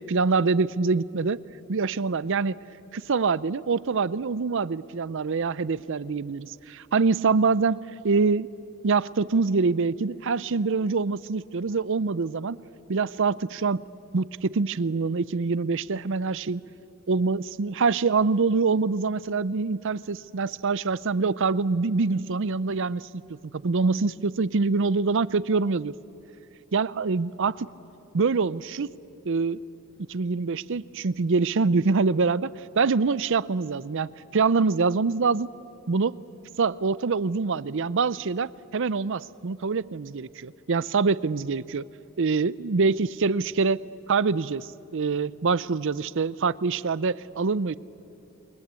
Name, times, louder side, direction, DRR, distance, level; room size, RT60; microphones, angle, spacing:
voice 1, 0.1-1.4 1.7-2.5 2.9-7.8 8.0-8.5 8.8-12.6 12.9-13.8 14.1-16.6 17.1-23.2 23.5-25.9 26.7-27.7 28.1-28.9 29.3-29.6 30.1-35.5 35.9-36.2 36.6-41.8 42.2-43.8 44.1-47.8, right 4 dB, 60° right, 19 dB, 0.6 m, -25 dB
28.5 x 22.5 x 8.3 m, 2.8 s
head